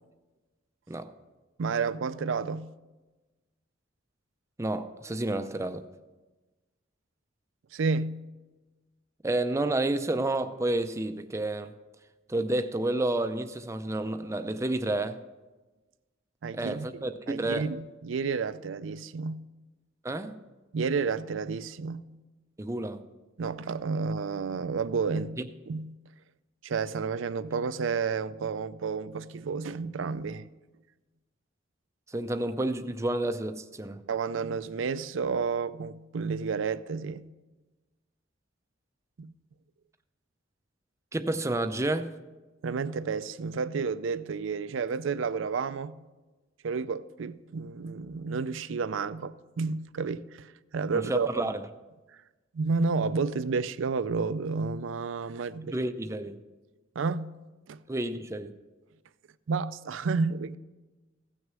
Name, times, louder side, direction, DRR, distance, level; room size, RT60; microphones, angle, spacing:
voice 1, 1.6-2.7 7.7-8.2 16.4-16.9 17.3-19.5 20.7-22.1 23.4-25.4 25.7-25.9 26.6-30.5 34.1-37.3 39.2-39.3 42.6-46.0 46.6-51.3 52.5-55.8 57.0-57.4 57.7-57.8 59.5-60.6, right 5 dB, 75° right, 0.4 m, -31 dB
voice 2, 4.6-5.8 9.2-11.7 12.3-15.2 16.5-17.7 20.0-20.4 22.6-23.0 32.1-34.0 41.1-42.1 50.9-51.7 55.7-56.4 57.9-58.5, right 1 dB, 15° right, 0.5 m, -30 dB
15.5 x 6.3 x 6.1 m
head